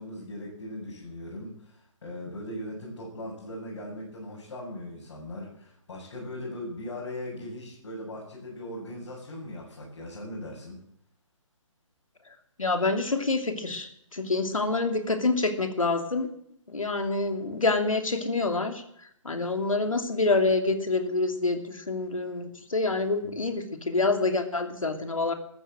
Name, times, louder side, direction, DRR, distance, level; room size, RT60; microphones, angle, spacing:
voice 1, 0.0-10.8, left 1 dB, 55° left, -4 dB, 7.5 m, -39 dB
voice 2, 12.6-16.3 16.7-18.8 19.2-25.3, left 3 dB, 85° left, 6 dB, 2.9 m, -27 dB
14.0 x 13.0 x 7.6 m, 0.71 s
figure-of-eight pair, 145°, 17 cm